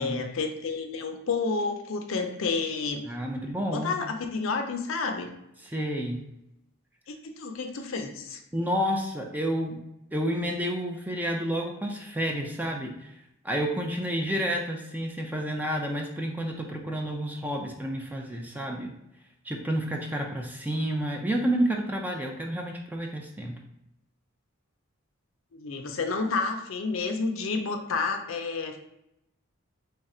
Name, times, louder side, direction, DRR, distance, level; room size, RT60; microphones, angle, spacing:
voice 1, 0.0-3.0 3.7-5.3 7.1-8.4 25.5-28.8, left 4 dB, 65° left, 5 dB, 0.5 m, -30 dB
voice 2, 3.1-3.9 5.6-6.2 8.5-9.8 10.1-13.2 13.4-18.9 19.4-23.6, equal, 10° right, 2 dB, 0.4 m, -30 dB
3.3 x 2.4 x 4.1 m, 0.84 s
head